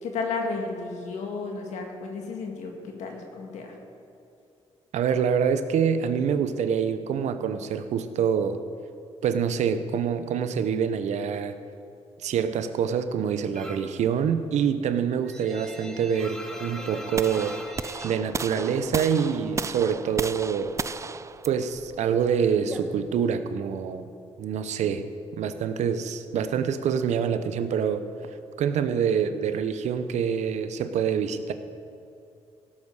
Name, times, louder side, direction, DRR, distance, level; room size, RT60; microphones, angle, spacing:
voice 1, 0.0-3.7, left 4 dB, 85° left, 2 dB, 1.9 m, -33 dB
voice 2, 4.9-8.6 9.2-11.6 12.2-17.6 18.0-20.8 21.5-24.1 24.4-25.1 25.4-28.0 28.6-31.5, right 7 dB, 80° right, 10 dB, 0.7 m, -26 dB
sound 1, 13.6-14.0 14.3-19.2 19.5-20.5 20.8-23.6, equal, 5° left, 1.3 m, -42 dB
sound 2, 17.2-23.2, right 4 dB, 25° right, 0.3 m, -34 dB
16.5 x 7.3 x 4.8 m, 2.7 s
cardioid pair, 75°, 12 cm